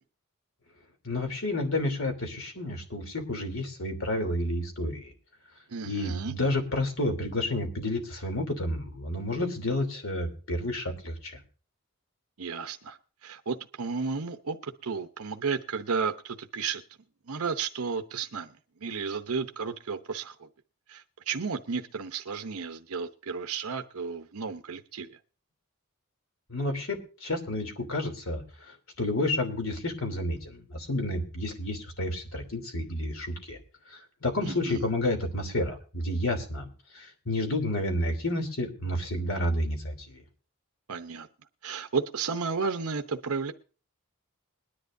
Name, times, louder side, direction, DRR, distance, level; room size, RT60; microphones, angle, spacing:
voice 1, 1.0-5.1 5.8-11.3 26.5-33.6 33.9-36.7 36.9-40.2, left 1 dB, 65° left, 5 dB, 3.1 m, -30 dB
voice 2, 5.7-6.3 12.4-16.8 17.3-18.5 18.8-20.5 20.9-25.2 34.4-34.8 40.9-41.3 41.6-43.5, right 5 dB, 80° right, 6 dB, 0.8 m, -33 dB
21.5 x 10.5 x 2.6 m, 0.37 s
head